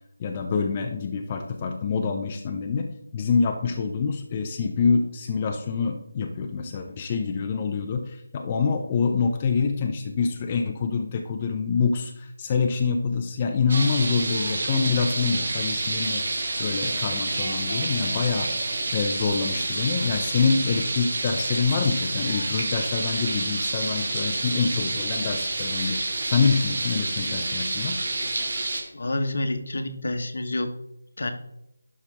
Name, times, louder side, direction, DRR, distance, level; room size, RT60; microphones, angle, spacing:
voice 1, 0.2-16.2 16.6-18.5 18.9-26.0 26.3-28.0, left 5 dB, 25° left, 3 dB, 0.7 m, -26 dB
sound 1, 13.7-28.8, right 2 dB, 55° right, 2.1 m, -28 dB
voice 2, 28.9-30.7 31.2-31.3, left 2 dB, 60° left, 7 dB, 1.2 m, -28 dB
11.5 x 5.6 x 3.5 m, 0.83 s
figure-of-eight pair, 165°, 0 cm